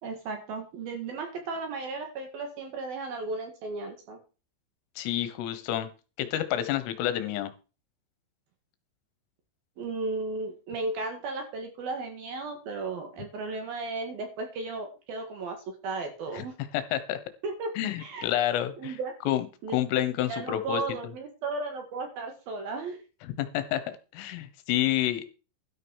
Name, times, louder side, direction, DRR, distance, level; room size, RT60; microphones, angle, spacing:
voice 1, 0.0-4.2 9.8-16.5 17.4-17.7 18.0-18.3 18.8-19.1 19.6-19.8 20.3-23.0, right 3 dB, 55° right, 5 dB, 3.1 m, -35 dB
voice 2, 5.0-5.9 6.2-7.5 16.3-16.5 16.7-17.2 17.8-19.0 19.3-19.5 19.7-20.8 23.2-25.3, left 12 dB, 80° left, 12 dB, 3.7 m, -29 dB
13.0 x 6.3 x 6.3 m, 0.33 s
omnidirectional pair, 5.9 m